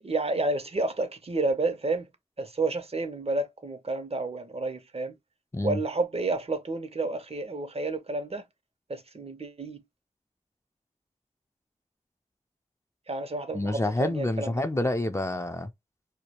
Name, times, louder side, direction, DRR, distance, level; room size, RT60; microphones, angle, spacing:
voice 1, 0.0-2.1 2.4-5.1 5.6-8.4 8.9-9.8 13.1-14.5, right 2 dB, 45° right, 0.5 m, -30 dB
voice 2, 13.5-15.7, left 1 dB, 20° left, 0.4 m, -28 dB
2.1 x 2.0 x 2.8 m
wide cardioid pair, 50°, 14 cm